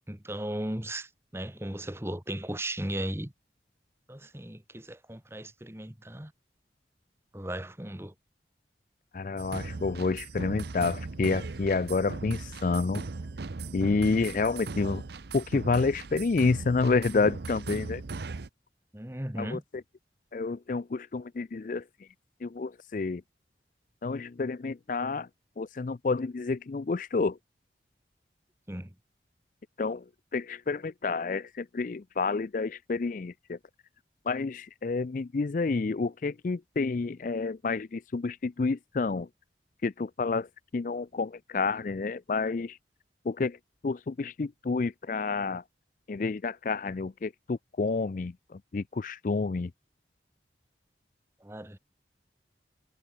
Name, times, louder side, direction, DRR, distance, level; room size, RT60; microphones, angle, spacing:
voice 1, 0.1-3.3 4.1-6.3 7.3-8.1 18.9-19.6 28.7-28.9 51.4-51.8, right 1 dB, 15° right, 1.6 m, -36 dB
voice 2, 9.1-13.1 13.7-15.0 15.3-18.0 19.4-19.8 20.3-22.1 22.4-23.2 24.0-25.3 25.6-27.4 29.8-33.6 34.2-39.3 39.8-42.8 43.2-45.6 46.1-49.7, left 4 dB, 45° left, 0.4 m, -29 dB
sound 1, 9.4-18.5, right 3 dB, 70° right, 0.7 m, -38 dB
head